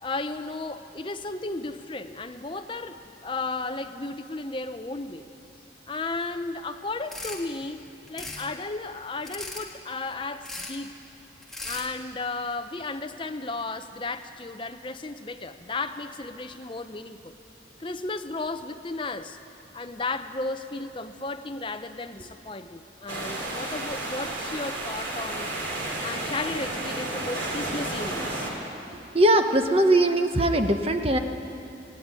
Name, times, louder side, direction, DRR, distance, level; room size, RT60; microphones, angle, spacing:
voice 1, 0.0-5.2 5.9-7.8 8.1-11.0 11.6-17.3 17.8-19.4 19.7-25.5 26.0-28.5, left 3 dB, 25° left, 7 dB, 0.7 m, -34 dB
sound 1, 7.1-7.4 8.1-8.5 9.2-9.7 10.4-10.8 11.4-11.9, left 2 dB, ahead, 1.7 m, -37 dB
sound 2, 23.1-28.5, right 2 dB, 85° right, 3.5 m, -32 dB
voice 2, 29.1-31.2, right 1 dB, 30° right, 6 dB, 1.0 m, -20 dB
17.0 x 16.5 x 9.6 m, 2.8 s
head